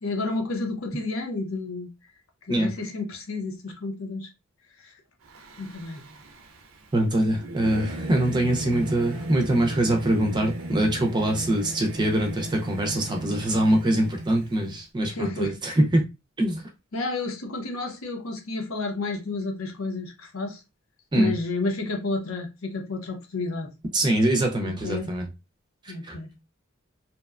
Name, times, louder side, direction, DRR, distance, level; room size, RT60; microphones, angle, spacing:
voice 1, 0.0-1.9 2.5-4.3 4.8-4.9 5.6-6.0 15.0-15.7 16.9-20.6 21.1-23.7 24.6-25.1 25.9-26.3, left 3 dB, 85° left, 0.8 m, -31 dB
Singing / Musical instrument, 5.2-14.8, right 1 dB, 80° right, 0.5 m, -36 dB
voice 2, 6.9-16.0 16.4-16.6 21.1-21.3 23.9-25.3 25.8-26.2, right 1 dB, 20° right, 0.4 m, -23 dB
2.8 x 2.2 x 2.3 m
head